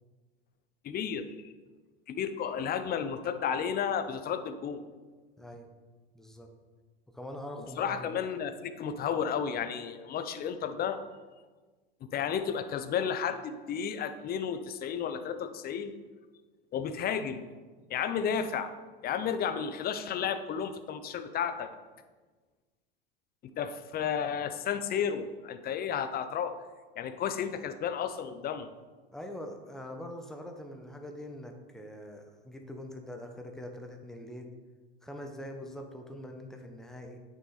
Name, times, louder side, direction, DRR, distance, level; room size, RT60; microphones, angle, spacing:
voice 1, 0.8-1.5 2.1-4.8 7.8-11.0 12.1-15.9 16.7-17.4 17.9-18.7 19.0-21.7 23.6-26.5 27.0-28.7, left 7 dB, 30° left, 10 dB, 0.8 m, -32 dB
voice 2, 5.4-5.7 6.1-6.5 7.1-8.2 29.1-34.5 35.0-37.2, left 1 dB, ahead, 3 dB, 1.1 m, -43 dB
9.0 x 6.5 x 4.2 m, 1.3 s
hypercardioid pair, 95°, 30 cm